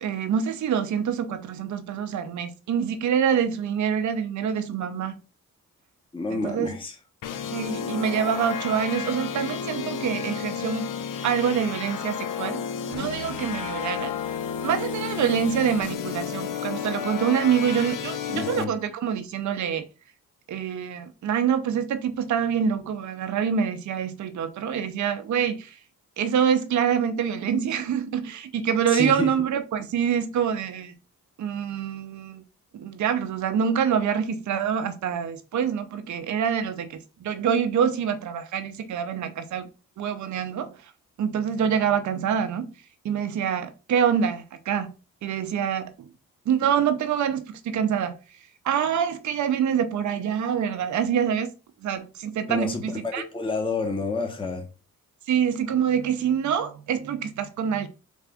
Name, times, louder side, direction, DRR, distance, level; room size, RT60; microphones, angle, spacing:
voice 1, 0.0-5.1 6.3-6.7 7.5-10.9 11.2-12.6 12.9-14.1 14.6-19.8 20.5-25.7 26.2-30.9 31.4-32.4 32.7-39.7 40.0-40.7 41.2-42.7 43.0-44.9 45.2-46.1 46.5-48.1 48.6-51.5 51.8-53.2 55.3-57.9, right 8 dB, 55° right, 0.6 m, -26 dB
voice 2, 6.1-7.0 18.3-18.7 28.9-29.3 52.5-54.6, left 3 dB, 15° left, 0.8 m, -29 dB
sound 1, 7.2-18.6, left 8 dB, 65° left, 0.5 m, -32 dB
3.4 x 2.4 x 3.5 m
cardioid pair, 60°, 35 cm